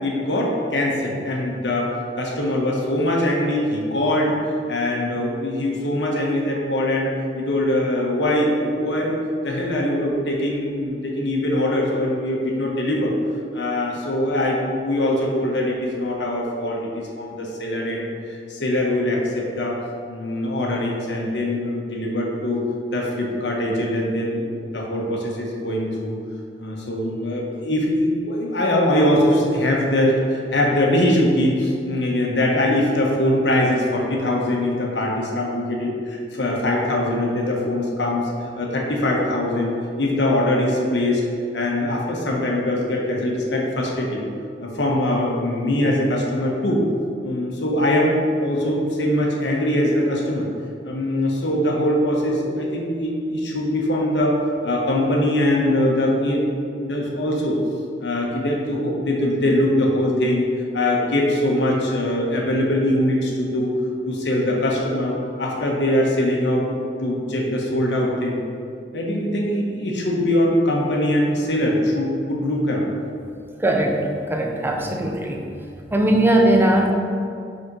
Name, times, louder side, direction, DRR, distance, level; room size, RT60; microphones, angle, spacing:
voice 1, 0.0-4.4 4.7-9.2 9.4-13.1 13.5-18.1 18.5-19.8 20.1-22.6 22.9-26.1 26.6-38.3 38.6-39.7 40.0-41.2 41.5-44.2 44.6-46.8 47.2-50.5 50.8-54.4 54.6-56.4 56.8-57.6 58.0-60.5 60.7-63.7 64.1-66.7 67.0-68.4 68.9-72.9 74.8-75.0, left 1 dB, 85° left, -2 dB, 1.2 m, -22 dB
voice 2, 73.6-75.5 75.9-76.9, right 1 dB, 15° right, 1 dB, 0.6 m, -19 dB
5.4 x 4.3 x 5.4 m, 2.4 s
head